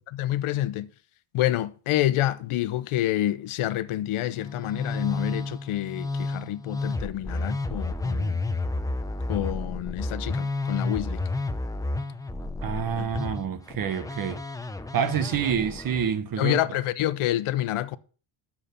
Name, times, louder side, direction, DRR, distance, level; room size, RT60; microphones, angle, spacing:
voice 1, 0.1-0.9 1.3-8.4 9.3-11.2 13.0-13.1 16.4-18.0, left 14 dB, 75° left, 0.9 m, -28 dB
Musical instrument, 4.3-16.1, left 2 dB, 5° left, 0.5 m, -31 dB
voice 2, 12.6-14.4 14.9-16.6, right 7 dB, 45° right, 1.2 m, -27 dB
10.0 x 7.2 x 6.7 m
cardioid pair, 155°, 49 cm